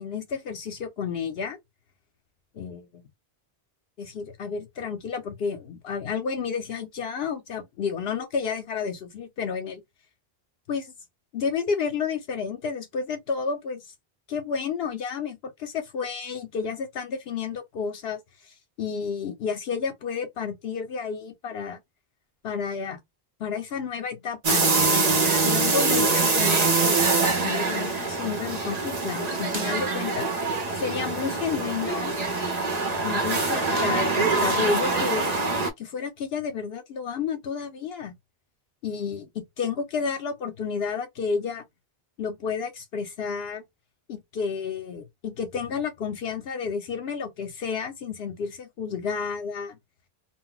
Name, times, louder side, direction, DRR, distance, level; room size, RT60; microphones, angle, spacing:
voice 1, 0.0-1.6 2.5-3.0 4.0-9.8 10.7-10.9 11.3-13.9 14.3-21.8 22.4-23.0 23.4-24.9 25.4-27.0 27.4-30.3 30.7-32.1 33.0-35.3 35.8-38.1 38.8-41.6 42.2-43.6 44.1-49.8, left 6 dB, 75° left, 0.9 m, -31 dB
sound 1, 24.4-35.7, right 3 dB, 45° right, 0.7 m, -24 dB
2.2 x 2.1 x 3.8 m
omnidirectional pair, 1.0 m